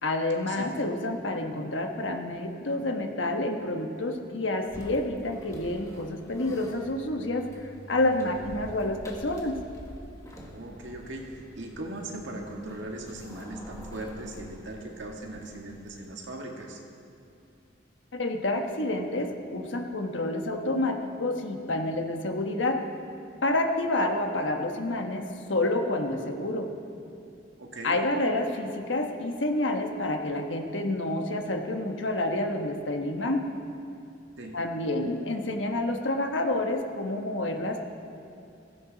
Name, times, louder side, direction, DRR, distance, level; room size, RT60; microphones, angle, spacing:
voice 1, 0.0-9.5 18.1-22.8 23.4-26.7 27.8-33.4 34.5-37.8, left 2 dB, 80° left, 4 dB, 1.3 m, -29 dB
sound 1, 4.7-16.1, equal, 15° left, 1.5 m, -47 dB
voice 2, 10.4-16.8 27.6-28.0 34.4-34.6, right 1 dB, 80° right, 1 dB, 1.9 m, -39 dB
16.0 x 15.0 x 4.0 m, 2.6 s
head